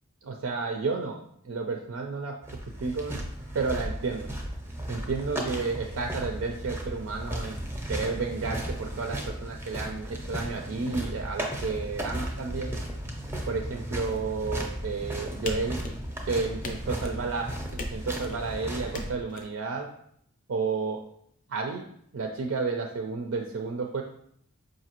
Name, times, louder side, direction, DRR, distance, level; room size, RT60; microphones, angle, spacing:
voice 1, 0.2-2.4 2.8-3.2 3.5-4.3 4.9-7.6 7.9-12.8 13.5-15.8 16.3-19.9 20.5-21.0 21.5-21.9 22.1-24.0, right 4 dB, 70° right, 2 dB, 0.4 m, -31 dB
sound 1, 2.4-19.1, right 1 dB, 10° right, 0.6 m, -35 dB
sound 2, 15.5-16.2 16.6-17.3 17.8-18.4 18.9-19.4, left 1 dB, 40° left, 0.5 m, -37 dB
4.9 x 2.6 x 2.9 m, 0.68 s
head